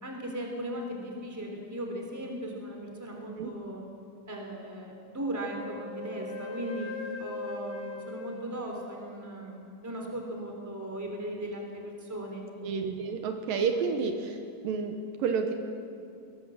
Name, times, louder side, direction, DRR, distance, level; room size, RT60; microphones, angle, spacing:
voice 1, 0.0-3.8 4.3-6.9 7.2-12.4, right 1 dB, 5° right, 1 dB, 2.7 m, -37 dB
Wind instrument woodwind instrument, 5.2-9.4, left 4 dB, 55° left, 1.7 m, -41 dB
voice 2, 12.6-14.4 14.6-15.5, right 5 dB, 75° right, 5 dB, 2.8 m, -30 dB
21.5 x 17.5 x 7.6 m, 2.5 s
omnidirectional pair, 4.2 m